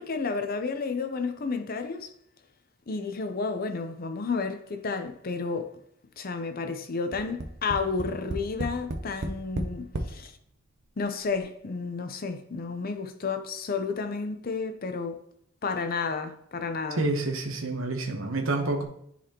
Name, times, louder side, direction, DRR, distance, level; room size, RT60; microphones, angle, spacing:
voice 1, 0.0-2.1 2.9-5.7 6.2-10.3 11.0-15.2 15.6-17.0, left 4 dB, 45° left, 0.6 m, -31 dB
Tap, 7.1-10.2 11.0-11.1 11.4-11.5, right 1 dB, 55° right, 0.6 m, -33 dB
voice 2, 16.9-18.8, right 2 dB, 70° right, 1.0 m, -28 dB
10.5 x 4.2 x 2.9 m
head